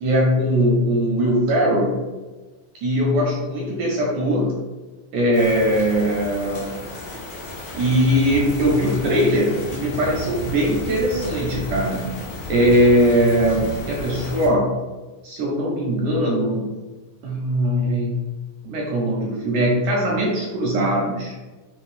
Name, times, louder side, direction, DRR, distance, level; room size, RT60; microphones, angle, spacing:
voice 1, 0.0-2.0 2.8-4.5 5.1-6.8 7.7-12.1 12.5-14.7 15.2-16.7 17.2-18.3 18.6-21.4, equal, 80° right, -3 dB, 1.7 m, -20 dB
sound 1, 5.3-14.5, left 2 dB, 70° left, 1.6 m, -33 dB
5.6 x 2.0 x 2.4 m, 1.2 s
omnidirectional pair, 3.8 m